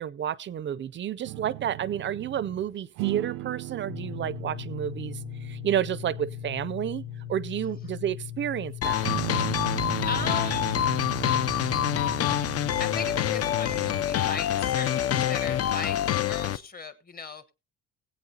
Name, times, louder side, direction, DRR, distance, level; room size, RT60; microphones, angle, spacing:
voice 1, 0.0-9.1, right 10 dB, 40° right, 0.5 m, -31 dB
sound 1, 1.2-2.7 3.0-8.7 9.0-14.1, right 16 dB, 90° right, 0.5 m, -37 dB
sound 2, 3.9-12.2, left 13 dB, 75° left, 0.8 m, -39 dB
sound 3, 8.8-16.6, left 11 dB, 50° left, 0.5 m, -26 dB
voice 2, 10.1-10.8 12.8-16.0 16.2-17.5, left 4 dB, 30° left, 1.1 m, -37 dB
19.5 x 8.4 x 2.8 m
cardioid pair, 130°, 31 cm